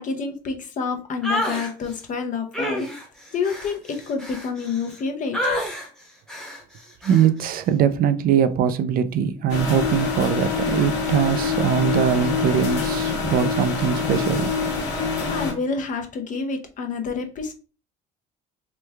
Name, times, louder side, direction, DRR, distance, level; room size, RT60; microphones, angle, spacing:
voice 1, 0.0-2.9 3.3-5.6 15.3-17.5, left 5 dB, 50° left, 0.6 m, -28 dB
sound 1, 1.2-1.7 2.5-5.0 5.3-5.9 6.3-6.6 7.0-7.3, left 1 dB, 5° left, 0.9 m, -28 dB
voice 2, 7.0-14.5, right 8 dB, 60° right, 0.4 m, -21 dB
sound 2, 9.5-15.5, left 5 dB, 85° left, 1.1 m, -25 dB
3.1 x 2.2 x 3.3 m
cardioid pair, 110°, 17 cm